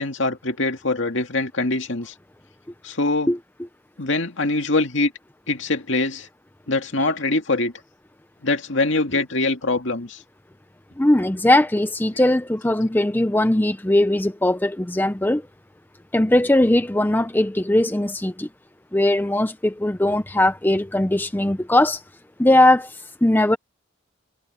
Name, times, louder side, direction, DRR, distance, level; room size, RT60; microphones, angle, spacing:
voice 1, 0.0-2.1 2.8-3.3 4.0-5.1 5.5-6.3 6.7-7.7 8.4-10.2, left 2 dB, 65° left, 2.2 m, -23 dB
voice 2, 11.0-15.4 16.1-18.5 18.9-22.0 22.4-22.9 23.2-23.6, left 1 dB, 10° left, 0.5 m, -19 dB
head